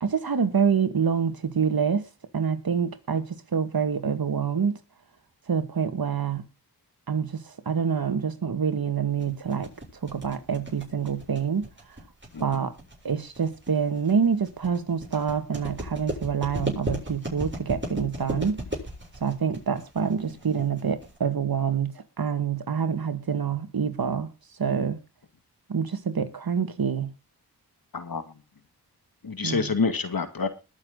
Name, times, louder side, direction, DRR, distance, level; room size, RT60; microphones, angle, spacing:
voice 1, 0.0-2.0 2.3-3.3 3.5-4.8 5.5-6.4 7.1-9.7 10.0-11.7 12.4-12.7 13.0-18.6 19.2-24.3 24.6-25.0 25.7-27.1 29.4-29.7, right 6 dB, 60° right, 2.0 m, -26 dB
sound 1, 9.2-21.2, right 1 dB, 30° right, 7.7 m, -35 dB
voice 2, 27.9-28.3 29.2-30.5, left 4 dB, 60° left, 2.2 m, -27 dB
21.0 x 7.0 x 3.9 m
cardioid pair, 45°, 40 cm